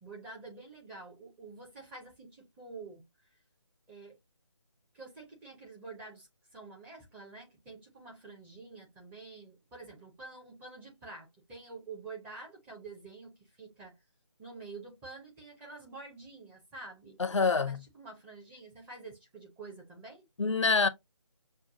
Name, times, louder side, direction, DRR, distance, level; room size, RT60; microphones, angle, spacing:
voice 1, 0.0-3.0 3.9-4.2 4.9-6.3 6.5-14.0 14.4-20.2, right 3 dB, 10° right, 0.7 m, -48 dB
voice 2, 17.2-17.8 20.4-20.9, left 4 dB, 75° left, 0.7 m, -26 dB
6.4 x 2.3 x 2.6 m
figure-of-eight pair, 155°, 16 cm